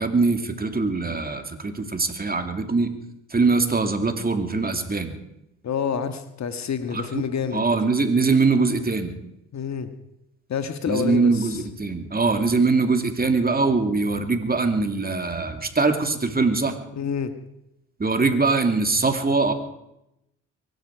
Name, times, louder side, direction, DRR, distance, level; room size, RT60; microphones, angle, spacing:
voice 1, 0.0-2.9 3.3-5.1 6.9-7.0 7.5-9.2 10.9-16.7 18.0-19.5, right 3 dB, 25° right, 6 dB, 2.7 m, -22 dB
voice 2, 5.6-7.7 9.5-9.9 10.5-11.6 17.0-17.3, left 7 dB, 50° left, 10 dB, 1.7 m, -28 dB
23.5 x 12.5 x 4.8 m, 0.84 s
hypercardioid pair, 55°, 35 cm